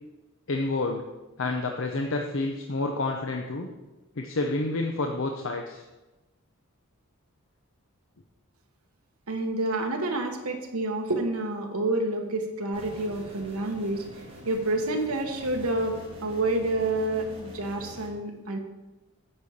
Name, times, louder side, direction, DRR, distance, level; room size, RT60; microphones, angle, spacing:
voice 1, 0.5-1.0 1.4-3.7 4.2-5.8, left 2 dB, 60° left, 3 dB, 0.7 m, -29 dB
voice 2, 9.3-14.0 14.4-18.6, right 2 dB, 80° right, 4 dB, 1.3 m, -28 dB
sound 1, 12.7-18.1, equal, 25° right, 2.1 m, -45 dB
8.8 x 5.0 x 7.1 m, 1.1 s
head